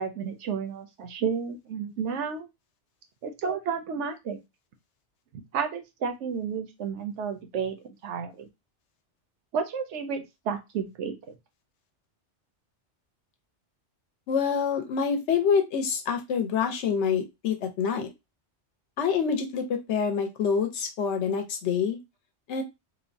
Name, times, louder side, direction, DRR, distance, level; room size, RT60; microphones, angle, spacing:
voice 1, 0.0-2.5 3.2-4.4 5.5-8.5 9.5-11.2, right 6 dB, 90° right, 6 dB, 0.9 m, -31 dB
voice 2, 14.3-18.1 19.0-22.0 22.5-22.6, left 6 dB, 80° left, 5 dB, 0.9 m, -26 dB
3.1 x 2.0 x 2.5 m, 0.23 s
omnidirectional pair, 1.2 m